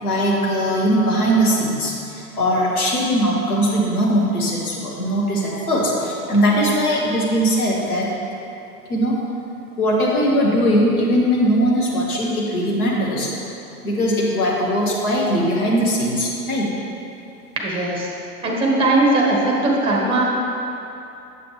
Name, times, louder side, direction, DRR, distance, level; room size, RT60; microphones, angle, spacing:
voice 1, 0.0-8.1 8.9-9.2 9.8-13.3 13.8-16.7, equal, 65° left, -3 dB, 1.9 m, -20 dB
voice 2, 17.6-18.1 18.4-20.2, right 2 dB, 10° right, -3 dB, 1.5 m, -19 dB
8.1 x 7.5 x 3.3 m, 2.8 s
figure-of-eight pair, 100°, 47 cm